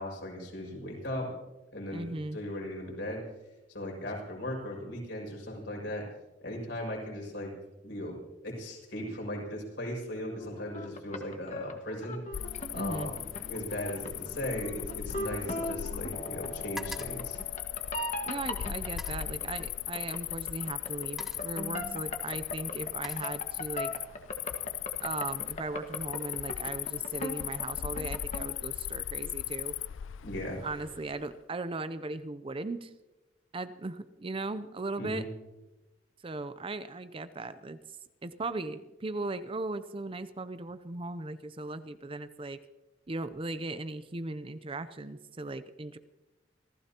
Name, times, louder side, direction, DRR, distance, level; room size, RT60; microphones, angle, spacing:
voice 1, 0.0-1.3 1.7-3.2 3.7-6.1 6.4-7.5 7.8-12.2 12.7-17.4 30.2-30.6 35.0-35.3, left 1 dB, 65° left, -2 dB, 6.2 m, -38 dB
voice 2, 1.9-2.4 12.7-13.1 18.2-23.9 25.0-29.8 30.6-32.9 33.5-35.2 36.2-37.8 38.2-42.6 43.1-46.0, right 2 dB, 30° right, 12 dB, 0.5 m, -38 dB
sound 1, 10.4-28.5, left 1 dB, 40° left, 1.6 m, -40 dB
sound 2, 12.2-12.6 12.9-16.0 16.3-18.2 18.8-19.3 20.3-20.5 20.9-21.6 22.5-23.9 24.2-24.6, equal, ahead, 1.2 m, -49 dB
Cricket, 12.3-31.2, left 13 dB, 85° left, 0.4 m, -38 dB
26.5 x 15.5 x 2.9 m, 1.1 s
head